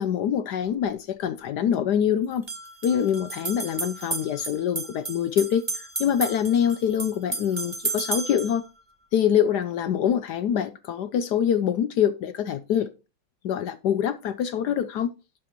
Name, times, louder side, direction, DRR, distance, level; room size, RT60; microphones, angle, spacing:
voice 1, 0.0-2.5 2.8-8.6 9.1-12.9 13.4-15.1, left 9 dB, 70° left, 1.0 m, -25 dB
sound 1, 0.7-0.8 2.3-8.6, right 3 dB, 15° right, 1.1 m, -33 dB
11.5 x 7.6 x 3.1 m
omnidirectional pair, 2.3 m